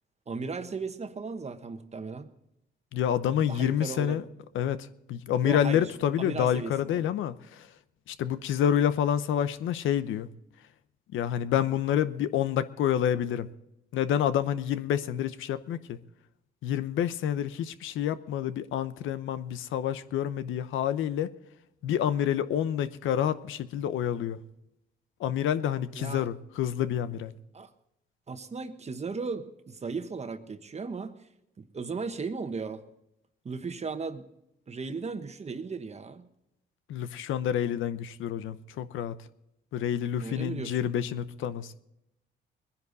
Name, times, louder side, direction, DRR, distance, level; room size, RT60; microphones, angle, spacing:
voice 1, 0.3-2.3 3.5-4.2 5.4-5.9 6.2-7.0 25.9-26.3 27.5-27.7 28.3-31.1 31.6-32.8 33.4-34.3 34.7-36.3 40.2-40.9, right 4 dB, 35° right, 1.2 m, -36 dB
voice 2, 2.9-4.2 4.5-7.7 8.1-10.3 11.1-13.5 13.9-16.0 16.6-21.3 21.8-24.4 25.2-27.3 36.9-39.1 39.7-41.8, left 10 dB, 80° left, 0.8 m, -28 dB
21.0 x 10.5 x 4.0 m
cardioid pair, 90°, 20 cm